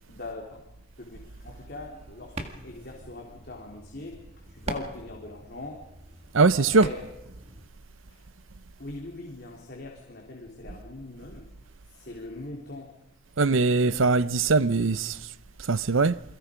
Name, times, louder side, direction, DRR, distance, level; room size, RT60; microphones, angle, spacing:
voice 1, 0.1-0.6 1.0-4.1 4.5-5.8 6.5-7.1 8.1-8.2 8.8-11.5 11.9-12.9 13.7-14.2, left 2 dB, 50° left, 3.5 m, -41 dB
sound 1, 1.7-7.7, right 1 dB, 30° right, 2.0 m, -42 dB
voice 2, 6.3-6.9 13.4-15.3 15.6-16.2, right 3 dB, 70° right, 0.7 m, -22 dB
29.0 x 22.5 x 5.1 m
head